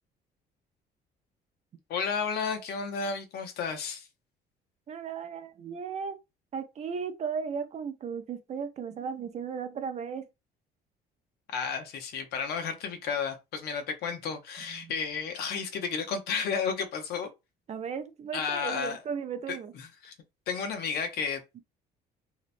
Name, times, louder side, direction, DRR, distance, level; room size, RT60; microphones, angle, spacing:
voice 1, 1.9-4.1 11.5-17.3 18.3-19.0 19.5-20.1 20.5-21.6, left 6 dB, 70° left, 0.6 m, -32 dB
voice 2, 4.9-6.2 6.5-10.3 14.7-14.9 17.7-19.7, right 6 dB, 40° right, 0.4 m, -36 dB
2.8 x 2.1 x 2.5 m
cardioid pair, 110°, 17 cm